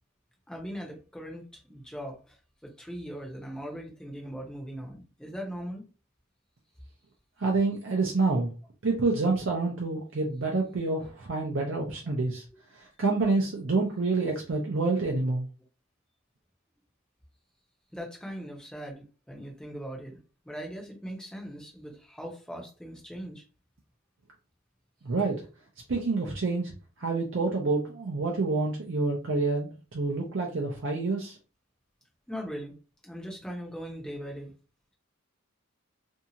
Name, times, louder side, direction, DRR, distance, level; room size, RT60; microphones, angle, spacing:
voice 1, 0.5-2.4 2.6-5.8 17.9-20.2 20.4-23.4 32.3-32.8 33.0-34.5, equal, 5° left, 0.7 m, -40 dB
voice 2, 7.4-8.5 8.8-12.4 12.7-15.5 25.0-25.4 25.9-26.7 27.0-31.3, right 3 dB, 60° right, 0.5 m, -28 dB
2.7 x 2.4 x 2.8 m
head